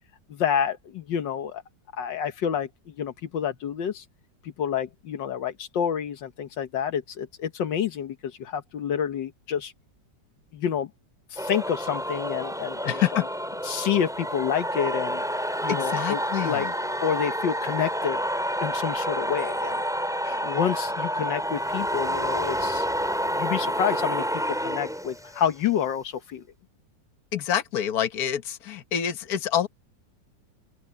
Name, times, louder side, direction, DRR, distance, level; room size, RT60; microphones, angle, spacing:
voice 1, 0.3-1.6 2.0-4.0 4.4-9.7 10.5-10.9 11.3-13.2 13.6-15.2 15.6-16.7 17.0-18.2 18.6-19.8 20.4-22.9 23.3-26.4, left 8 dB, 80° left, 1.8 m, -28 dB
sound 1, 11.4-25.5, equal, ahead, 4.8 m, -29 dB
voice 2, 12.8-13.2 15.7-16.7 20.2-20.4 27.3-29.7, left 10 dB, 55° left, 1.7 m, -27 dB
open air
omnidirectional pair, 2.0 m